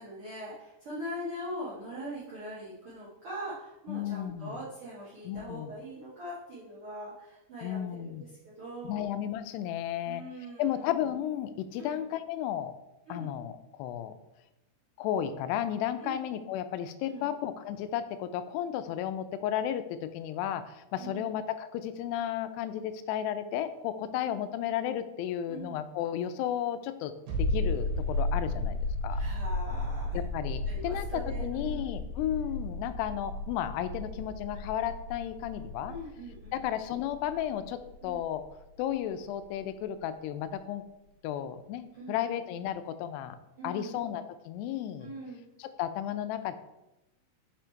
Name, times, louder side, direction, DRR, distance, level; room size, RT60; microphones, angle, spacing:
voice 1, 0.0-8.1 8.6-9.0 10.0-10.9 11.8-12.0 13.1-13.3 16.0-16.1 17.1-17.3 21.0-21.3 24.2-24.4 25.5-25.8 29.1-30.2 30.6-31.8 35.9-36.5 38.0-38.2 41.9-42.2 43.6-44.0 45.0-45.4, equal, 50° right, -9 dB, 1.7 m, -42 dB
voice 2, 3.9-4.6 5.2-5.7 7.6-8.3 8.8-10.2 10.6-12.7 13.1-14.1 15.0-28.8 29.0-29.2 30.1-36.0 36.5-38.4 38.8-40.9 41.2-43.4 43.6-45.1 45.6-46.6, left 10 dB, 90° left, 11 dB, 2.7 m, -33 dB
sound 1, 27.3-38.6 38.9-39.0, left 2 dB, 70° right, 3.3 m, -34 dB
6.1 x 5.6 x 4.5 m, 0.94 s
omnidirectional pair, 4.7 m